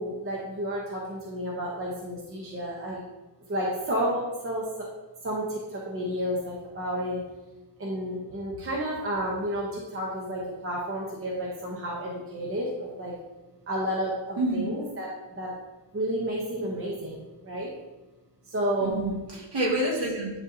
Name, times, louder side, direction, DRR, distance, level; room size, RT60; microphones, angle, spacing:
voice 1, 0.0-3.0 3.5-4.9 5.2-7.2 7.8-13.1 13.7-15.5 15.9-17.7 18.5-19.1, equal, 25° right, -3 dB, 0.9 m, -31 dB
voice 2, 14.4-14.7 18.8-20.4, right 1 dB, 55° right, -4 dB, 2.1 m, -28 dB
10.5 x 3.9 x 2.7 m, 1.1 s
cardioid pair, 160°, 48 cm